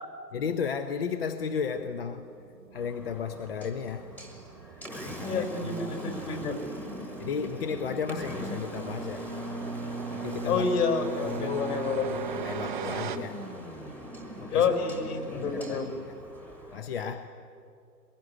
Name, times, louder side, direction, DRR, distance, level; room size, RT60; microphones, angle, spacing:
voice 1, 0.3-2.3 2.7-4.1 5.0-6.5 7.2-9.3 10.1-10.7 11.3-11.8 12.1-13.5 14.4-14.7 15.2-16.1 16.7-17.3, left 6 dB, 35° left, 9 dB, 0.9 m, -34 dB
sound 1, 1.4-13.2, right 9 dB, 30° right, 0.8 m, -42 dB
Engine, 2.7-16.8, right 1 dB, 5° left, 1.5 m, -39 dB
voice 2, 5.2-6.6 10.5-12.1 14.5-15.9, left 5 dB, 60° left, 6 dB, 5.6 m, -28 dB
22.5 x 21.5 x 9.8 m, 2.5 s
hypercardioid pair, 155°, 50 cm